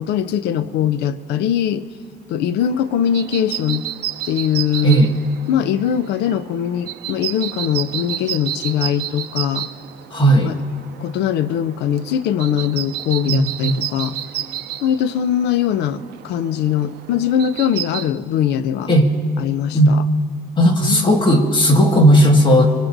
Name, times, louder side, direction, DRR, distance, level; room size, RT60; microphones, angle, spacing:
voice 1, 0.0-1.8 2.3-3.9 4.2-5.0 5.5-9.7 10.4-10.6 11.0-14.1 14.8-18.9 19.4-20.0 20.8-21.2, left 9 dB, 85° left, 14 dB, 0.6 m, -21 dB
sound 1, 2.6-18.1, right 12 dB, 70° right, 0.7 m, -31 dB
voice 2, 4.8-5.2 10.1-10.6 13.2-13.8 18.9-19.1 19.7-19.9 20.6-22.7, equal, 30° left, 3 dB, 1.9 m, -14 dB
24.0 x 22.0 x 2.7 m, 2.3 s
cardioid pair, 110°, 17 cm